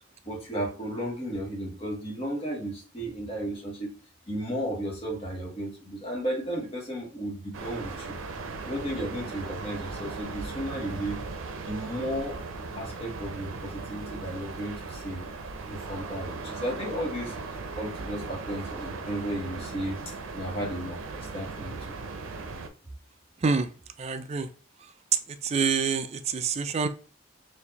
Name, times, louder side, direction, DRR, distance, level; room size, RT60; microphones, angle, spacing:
voice 1, 0.2-3.9 4.3-8.1 8.6-11.2 11.6-12.4 12.8-15.2 15.6-20.0 20.3-22.0, right 1 dB, 30° left, -2 dB, 1.4 m, -34 dB
sound 1, 7.5-22.7, right 3 dB, 80° right, 0.6 m, -38 dB
voice 2, 23.4-23.7 24.0-24.5 24.8-26.9, right 5 dB, 30° right, 9 dB, 0.3 m, -27 dB
4.3 x 2.6 x 2.8 m, 0.39 s
head